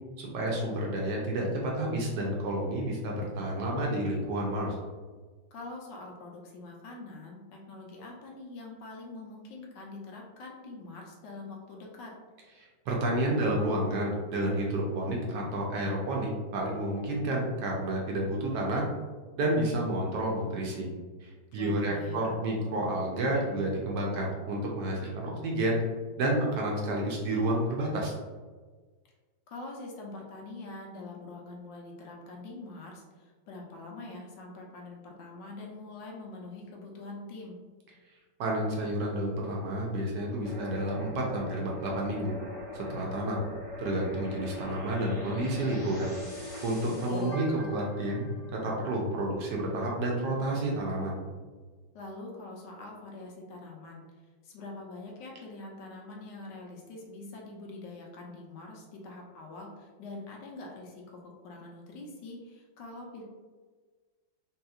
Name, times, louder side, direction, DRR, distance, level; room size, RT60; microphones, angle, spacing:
voice 1, 0.2-4.7 12.9-18.8 19.4-20.9 21.2-25.8 26.2-28.1 38.4-42.3 42.7-43.4 43.8-46.1 46.6-51.2, right 1 dB, 70° right, -2 dB, 1.1 m, -30 dB
voice 2, 5.5-12.1 21.6-22.4 29.5-37.6 46.8-47.4 51.9-54.0 54.4-63.2, left 2 dB, 70° left, -1 dB, 1.2 m, -44 dB
sound 1, 40.4-49.1, left 1 dB, 45° left, 1.2 m, -41 dB
3.4 x 2.8 x 2.3 m, 1.4 s
omnidirectional pair, 2.2 m